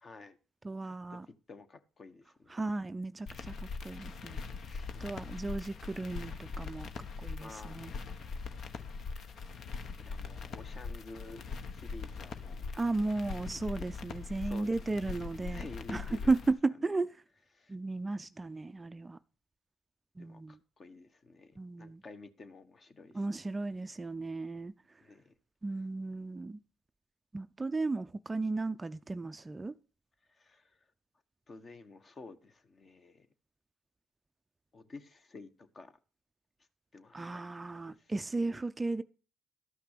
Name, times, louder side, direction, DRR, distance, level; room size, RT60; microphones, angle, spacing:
voice 1, 0.0-0.4 0.8-1.2 1.5-2.6 4.6-5.1 7.4-7.8 10.0-11.4 11.7-12.6 14.4-15.0 15.4-16.3 16.8-16.9 17.5-17.7 20.2-23.4 25.0-25.3 30.3-30.9 31.5-33.3 34.7-36.0 36.9-37.4 37.8-38.6, left 3 dB, 35° left, 1.3 m, -51 dB
voice 2, 0.6-1.3 2.5-4.4 5.0-7.9 12.7-17.2 17.7-19.2 20.2-20.6 21.6-22.0 23.1-25.0 25.6-26.6 27.3-29.8 37.1-39.0, right 3 dB, 20° right, 0.4 m, -35 dB
sound 1, 3.3-16.5, left 4 dB, 55° left, 1.0 m, -41 dB
12.5 x 5.8 x 6.6 m
cardioid pair, 90°, 0 cm